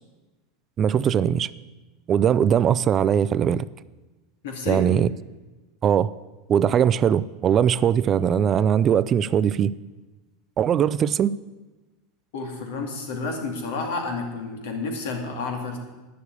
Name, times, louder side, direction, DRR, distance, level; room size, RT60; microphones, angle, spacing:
voice 1, 0.8-1.5 2.1-3.7 4.7-5.1 5.8-6.1 6.5-9.7 10.6-11.3, right 8 dB, 35° right, 17 dB, 0.4 m, -20 dB
voice 2, 4.4-4.9 12.3-15.8, left 3 dB, 75° left, 2 dB, 2.5 m, -30 dB
10.0 x 6.9 x 8.3 m, 1.2 s
hypercardioid pair, 100°, 0 cm